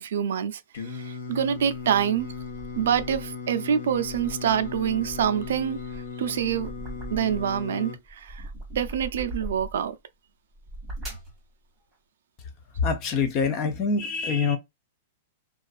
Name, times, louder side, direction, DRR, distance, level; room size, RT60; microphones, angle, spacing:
voice 1, 0.0-2.3 2.8-6.7 7.1-10.0, right 8 dB, 70° right, 0.4 m, -26 dB
Singing, 0.7-8.0, left 5 dB, 65° left, 0.9 m, -37 dB
sound 1, 1.5-3.4 3.9-7.7 8.0-9.9 10.5-11.4, right 1 dB, ahead, 1.2 m, -40 dB
voice 2, 12.8-14.6, left 5 dB, 25° left, 0.5 m, -25 dB
2.4 x 2.3 x 2.2 m
supercardioid pair, 165°, 0 cm